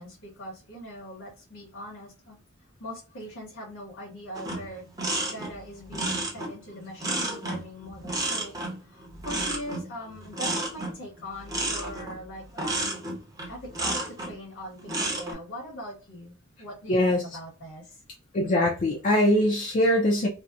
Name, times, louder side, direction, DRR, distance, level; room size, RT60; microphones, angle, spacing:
voice 1, 0.0-2.4 2.8-4.8 5.2-8.5 8.8-12.9 13.5-18.0, left 1 dB, 65° left, 1.0 m, -41 dB
sound 1, 4.3-14.4 14.8-15.3, right 2 dB, 15° right, 0.7 m, -31 dB
voice 2, 16.9-17.2 18.3-20.3, left 1 dB, 40° left, 0.4 m, -22 dB
2.7 x 2.0 x 2.3 m
head